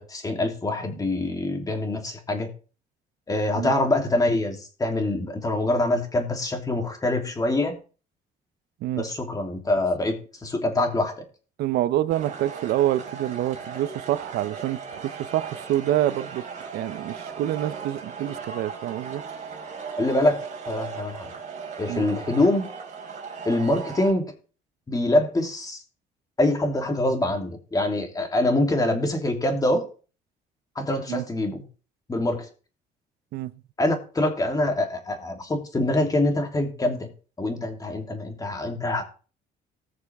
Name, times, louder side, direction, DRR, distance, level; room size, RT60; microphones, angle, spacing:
voice 1, 0.0-2.5 3.3-7.7 9.0-11.1 20.0-20.4 20.7-21.3 21.8-22.7 23.4-24.3 24.9-25.8 26.4-29.9 30.7-31.6 32.1-32.5 33.8-37.1 37.4-39.0, left 1 dB, 20° left, 3.1 m, -24 dB
voice 2, 11.6-16.4 16.7-19.2 21.9-22.1 31.1-31.2 33.3-33.5, right 13 dB, 75° right, 0.7 m, -27 dB
sound 1, 12.1-24.1, right 6 dB, 45° right, 4.7 m, -38 dB
20.0 x 6.7 x 3.6 m
cardioid pair, 110°, 17 cm